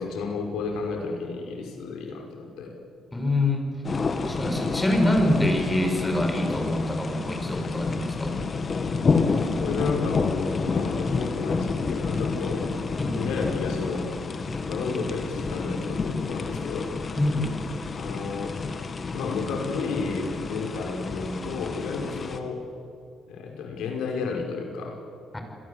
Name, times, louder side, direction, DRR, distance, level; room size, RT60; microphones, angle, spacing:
voice 1, 0.0-2.7 9.6-12.7 13.1-14.1 14.7-16.9 17.9-18.6 19.1-22.7 23.3-25.0, left 4 dB, 85° left, 2 dB, 5.2 m, -32 dB
voice 2, 3.1-3.6 4.3-8.4 13.0-13.2 14.9-15.0 17.2-17.6 25.3-25.4, left 1 dB, 15° left, 4 dB, 5.7 m, -25 dB
sound 1, 3.8-22.4, left 4 dB, 40° left, 2.3 m, -29 dB
29.0 x 22.0 x 8.4 m, 2.5 s
cardioid pair, 90°, 0 cm